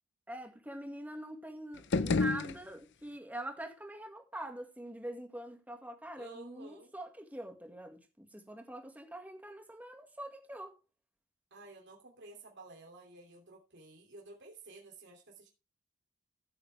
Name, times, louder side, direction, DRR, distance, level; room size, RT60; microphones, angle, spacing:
voice 1, 0.3-10.7, right 1 dB, 10° right, 2.0 m, -44 dB
sound 1, 1.7-3.2, left 3 dB, 60° left, 0.6 m, -32 dB
voice 2, 6.2-6.9 11.5-15.5, right 3 dB, 55° right, 2.9 m, -53 dB
14.0 x 7.6 x 3.4 m
head